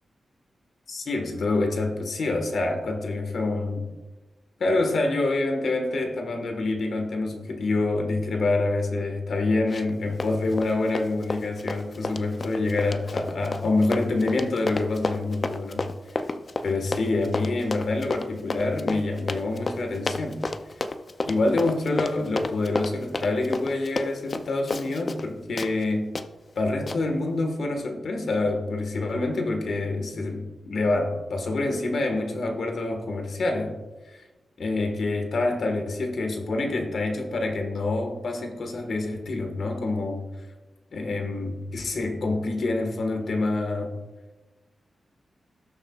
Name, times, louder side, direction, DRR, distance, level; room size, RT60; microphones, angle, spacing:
voice 1, 0.9-3.9 4.6-15.9 16.6-20.4 21.3-26.1 26.5-33.8 34.1-34.2 34.6-40.3 40.9-43.9, left 2 dB, 60° left, 4 dB, 1.5 m, -26 dB
Run, 9.7-10.0 10.2-25.3 25.6-25.7 26.2-26.3 26.9-27.0, left 3 dB, 35° left, 0.4 m, -31 dB
18.0 x 6.8 x 2.4 m, 1.2 s
wide cardioid pair, 160°, 0 cm